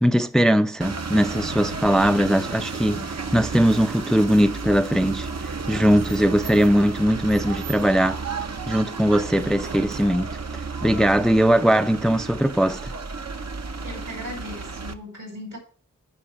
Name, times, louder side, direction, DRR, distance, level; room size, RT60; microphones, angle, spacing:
voice 1, 0.0-5.3 5.7-8.2 8.7-10.4 10.8-12.9, equal, ahead, 0.5 m, -20 dB
sound 1, 0.8-14.9, right 4 dB, 55° right, 0.9 m, -32 dB
voice 2, 13.8-15.6, left 1 dB, 80° right, 5.0 m, -37 dB
10.0 x 4.8 x 7.5 m
wide cardioid pair, 55°, 31 cm